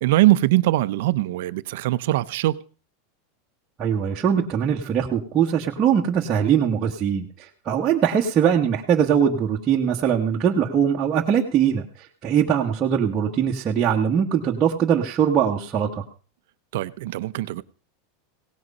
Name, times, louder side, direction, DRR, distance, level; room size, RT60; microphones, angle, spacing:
voice 1, 0.0-2.6 16.7-17.6, right 17 dB, 65° right, 0.7 m, -21 dB
voice 2, 3.8-11.8 12.2-16.0, right 8 dB, 25° right, 1.3 m, -21 dB
17.5 x 7.9 x 5.4 m
supercardioid pair, 155°, 0 cm